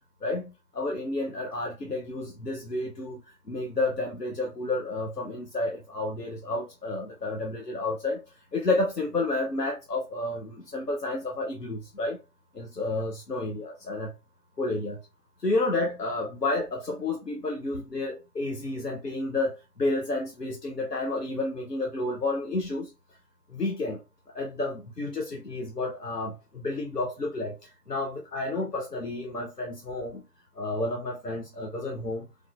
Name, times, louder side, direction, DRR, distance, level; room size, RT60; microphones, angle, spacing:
voice 1, 0.2-12.2 12.5-14.1 14.6-15.0 15.4-22.9 23.5-24.0 24.3-30.2 30.5-32.3, left 2 dB, 80° left, 0.9 m, -31 dB
3.6 x 3.2 x 2.4 m
figure-of-eight pair, 175°, 47 cm